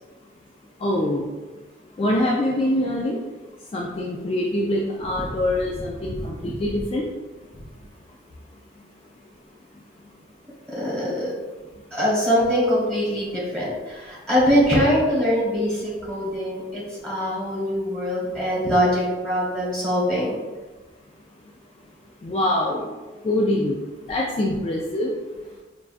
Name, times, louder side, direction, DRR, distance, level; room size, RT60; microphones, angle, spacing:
voice 1, 0.8-1.3 2.0-3.2 3.7-7.1 22.2-22.9 23.2-23.8 24.1-25.1, left 1 dB, 30° left, -2 dB, 0.3 m, -24 dB
voice 2, 10.7-11.3 11.9-20.4, equal, 5° left, -8 dB, 1.2 m, -23 dB
5.3 x 2.3 x 2.4 m, 1.2 s
head